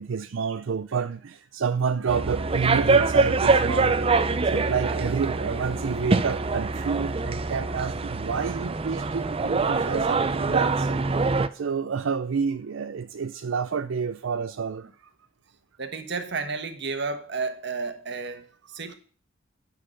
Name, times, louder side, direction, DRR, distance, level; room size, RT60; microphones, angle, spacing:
voice 1, 0.0-15.1, right 6 dB, 80° right, 0.5 m, -29 dB
sound 1, 2.1-11.5, right 3 dB, 30° right, 0.6 m, -24 dB
voice 2, 15.8-19.0, right 4 dB, 65° right, 1.4 m, -32 dB
10.0 x 5.9 x 6.5 m
head